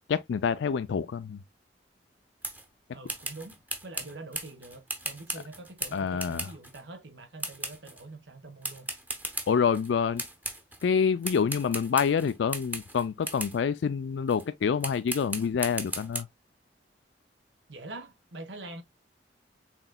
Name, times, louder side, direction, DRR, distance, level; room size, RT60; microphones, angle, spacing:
voice 1, 0.1-1.4 5.9-6.5 9.5-10.2 10.8-16.3, left 6 dB, 80° left, 0.4 m, -27 dB
sound 1, 2.4-2.7 3.1-6.8 7.4-8.0 8.6-9.9 10.2-10.9 11.2-13.6 14.3-14.5 14.8-16.2, right 2 dB, 10° right, 0.9 m, -37 dB
voice 2, 2.9-3.6 3.8-8.9 17.7-18.8, right 2 dB, 75° right, 1.2 m, -44 dB
6.0 x 3.9 x 2.2 m
head